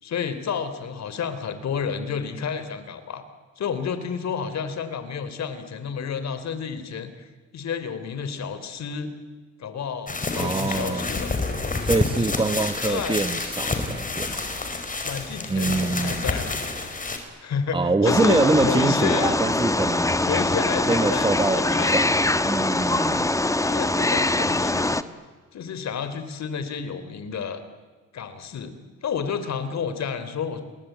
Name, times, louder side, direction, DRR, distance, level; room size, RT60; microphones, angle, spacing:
voice 1, 0.0-3.2 3.6-7.3 7.5-9.1 9.6-11.3 12.8-13.2 15.0-16.5 17.4-19.4 20.2-22.0 23.7-24.9 25.5-27.6 28.1-28.7 29.0-30.6, left 6 dB, 60° left, 11 dB, 3.3 m, -30 dB
sound 1, 10.1-17.2, left 3 dB, 25° left, 4.5 m, -29 dB
voice 2, 10.3-11.1 11.8-14.5 15.5-16.3 17.7-20.1 20.9-23.3, right 3 dB, 15° right, 11 dB, 1.4 m, -25 dB
Wild animals, 18.0-25.0, left 2 dB, 10° left, 1.2 m, -23 dB
29.0 x 21.0 x 9.2 m, 1.4 s
cardioid pair, 90°, 30 cm